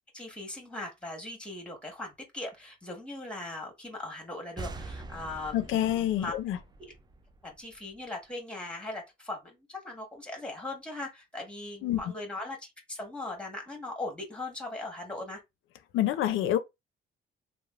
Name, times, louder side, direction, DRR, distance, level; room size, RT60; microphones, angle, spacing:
voice 1, 0.1-6.3 6.8-6.9 7.4-15.4, left 2 dB, 5° left, 1.3 m, -39 dB
sound 1, 4.6-8.1, right 3 dB, 20° right, 0.3 m, -44 dB
voice 2, 5.5-6.6 11.8-12.0 15.9-16.6, left 12 dB, 80° left, 0.5 m, -27 dB
3.1 x 2.0 x 2.4 m
cardioid pair, 90°, 20 cm